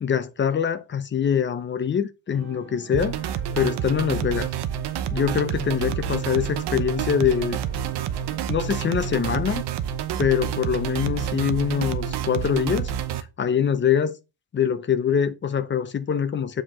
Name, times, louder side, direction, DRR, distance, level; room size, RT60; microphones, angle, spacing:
voice 1, 0.0-3.2 3.5-4.5 5.1-7.6 8.5-9.6 10.2-12.9 13.4-14.2 14.5-16.6, left 8 dB, 30° left, 0.6 m, -24 dB
sound 1, 2.3-8.8, right 5 dB, 30° right, 2.3 m, -46 dB
sound 2, 2.9-13.2, right 10 dB, 80° right, 0.9 m, -28 dB
7.4 x 5.1 x 3.6 m
wide cardioid pair, 180°, 40 cm